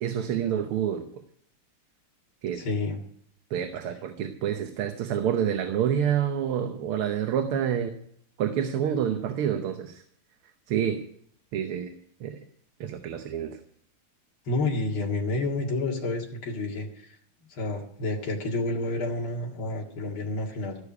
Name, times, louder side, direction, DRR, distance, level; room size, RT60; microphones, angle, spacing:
voice 1, 0.0-1.1 2.4-2.6 3.5-8.0 8.4-10.0 10.7-11.0 11.5-12.4 12.8-13.6, right 9 dB, 80° right, 7 dB, 1.9 m, -28 dB
voice 2, 2.5-3.0 14.5-17.1 17.5-20.8, left 2 dB, 70° left, -1 dB, 2.9 m, -29 dB
15.0 x 6.7 x 9.8 m, 0.66 s
omnidirectional pair, 2.4 m